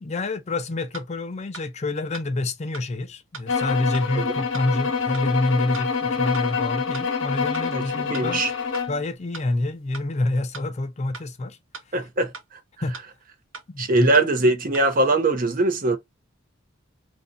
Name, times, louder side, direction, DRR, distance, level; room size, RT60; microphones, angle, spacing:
voice 1, 0.0-8.5 8.9-11.6 12.8-13.0 13.7-14.1, left 2 dB, 35° left, 0.4 m, -27 dB
sound 1, 0.9-1.0 1.5-1.6 2.1-2.2 2.7-2.8 3.3-3.4 3.9-4.0 4.5-4.6 5.1-5.2 5.7-5.8 6.3-6.4 6.9-7.0 7.5-7.6 8.1-8.2 8.7-8.8 9.3-9.4 9.9-10.0 10.5-10.6 11.1-11.2 11.7-11.8 12.3-12.4 12.9-13.0 13.5-13.6 14.1-14.2 14.7-14.8, right 4 dB, 75° right, 1.0 m, -38 dB
sound 2, 3.5-9.0, left 5 dB, 65° left, 0.7 m, -26 dB
voice 2, 8.1-8.5 11.9-12.3 13.8-16.0, right 2 dB, 40° right, 0.6 m, -21 dB
2.6 x 2.3 x 3.7 m
head